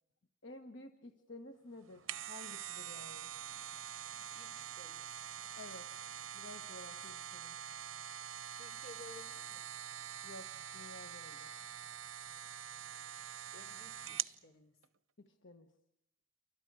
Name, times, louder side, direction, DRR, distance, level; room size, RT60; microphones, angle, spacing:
voice 1, 0.4-3.3 5.5-5.9 6.3-7.6 10.2-11.5 15.2-15.7, left 2 dB, 70° left, 6 dB, 1.3 m, -52 dB
sound 1, 1.8-14.4 14.8-14.9, right 10 dB, 80° right, 0.8 m, -45 dB
voice 2, 4.3-5.1 8.5-9.8 13.5-14.8, left 2 dB, 85° left, 6 dB, 3.6 m, -56 dB
29.5 x 24.5 x 4.8 m, 0.81 s
head